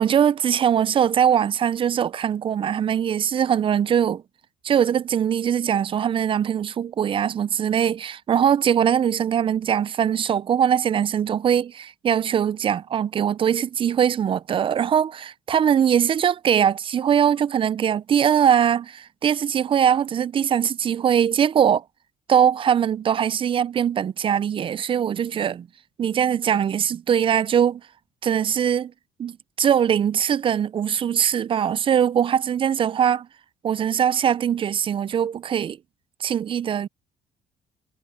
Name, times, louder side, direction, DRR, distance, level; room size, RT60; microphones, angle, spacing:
voice 1, 0.0-4.2 4.6-21.8 22.3-25.7 26.0-27.8 28.2-28.9 29.2-33.3 33.6-35.8 36.2-36.9, right 8 dB, 30° right, 0.3 m, -21 dB
cardioid pair, 110°, 17 cm